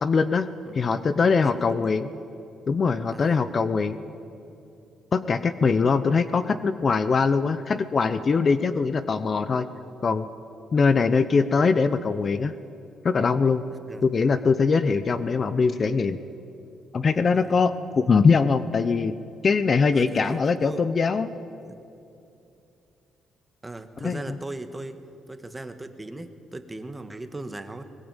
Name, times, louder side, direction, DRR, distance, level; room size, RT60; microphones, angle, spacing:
voice 1, 0.0-2.1 2.7-4.0 5.1-9.7 10.0-10.3 10.7-12.5 13.0-13.6 14.0-16.2 16.9-19.1 19.4-21.3 24.0-24.4, left 5 dB, 35° left, 13 dB, 0.8 m, -22 dB
voice 2, 1.4-1.9 3.1-3.5 13.9-14.0 17.3-17.5 19.9-20.8 21.7-21.8 23.6-25.0 25.3-27.8, right 2 dB, 15° right, 8 dB, 1.5 m, -38 dB
21.0 x 20.5 x 9.1 m, 2.8 s
cardioid pair, 120°, 0 cm